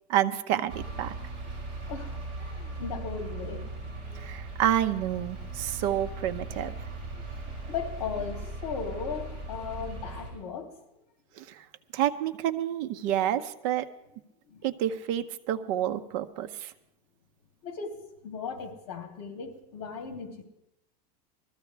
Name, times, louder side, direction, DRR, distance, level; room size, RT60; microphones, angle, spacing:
voice 1, 0.1-1.1 4.2-6.7 11.4-11.6 11.9-13.9 14.6-16.7, right 11 dB, 50° right, 9 dB, 0.8 m, -29 dB
sound 1, 0.7-10.3, right 2 dB, 25° right, 5.6 m, -38 dB
voice 2, 1.8-3.6 4.0-4.2 7.1-10.8 14.5-14.7 17.6-18.0 18.2-20.4, left 5 dB, 60° left, 3 dB, 2.9 m, -37 dB
21.0 x 14.5 x 3.4 m, 0.87 s
supercardioid pair, 165°, 20 cm